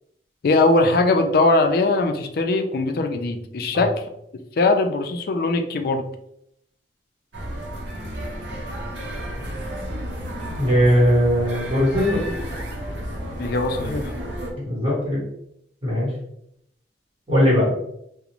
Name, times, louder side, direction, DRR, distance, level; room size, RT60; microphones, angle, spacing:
voice 1, 0.4-3.9 4.6-6.0 13.4-14.1, left 2 dB, 55° left, 5 dB, 0.3 m, -20 dB
sound 1, 7.3-14.5, equal, 90° right, 0.6 m, -32 dB
voice 2, 10.5-12.3 14.6-15.2 15.8-16.1 17.3-17.7, equal, 30° right, -7 dB, 1.2 m, -19 dB
2.5 x 2.0 x 2.8 m, 0.75 s
head